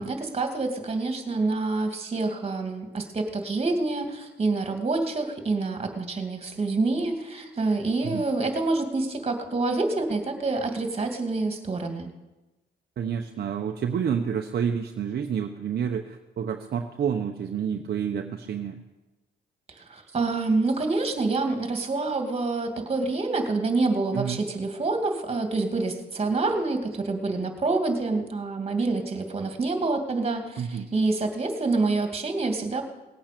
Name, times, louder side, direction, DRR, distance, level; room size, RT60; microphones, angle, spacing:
voice 1, 0.0-12.1 19.8-32.9, right 3 dB, 30° right, 5 dB, 2.5 m, -27 dB
voice 2, 13.0-18.8 24.1-24.4 30.6-30.9, right 7 dB, 55° right, 4 dB, 1.0 m, -29 dB
19.0 x 8.9 x 6.8 m, 1.1 s
cardioid pair, 90°, 20 cm